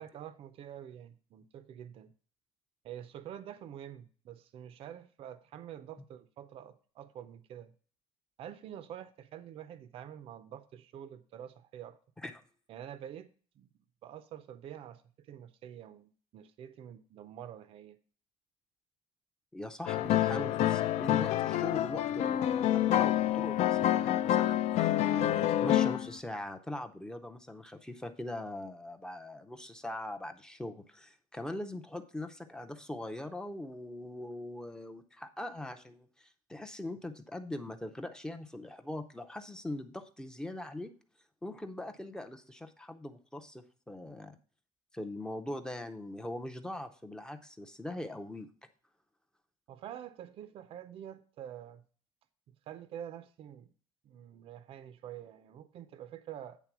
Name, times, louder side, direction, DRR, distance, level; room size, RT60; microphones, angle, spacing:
voice 1, 0.0-2.1 2.8-7.7 8.4-12.0 12.7-13.3 13.6-13.7 14.0-18.0 49.7-51.8 52.7-53.7 54.0-56.6, right 10 dB, 50° right, 0.5 m, -47 dB
voice 2, 19.5-40.9 41.4-44.4 44.9-48.5, left 1 dB, 5° left, 0.5 m, -41 dB
sound 1, 19.9-26.1, left 12 dB, 60° left, 0.4 m, -28 dB
9.1 x 3.7 x 5.9 m
cardioid pair, 175°, 13 cm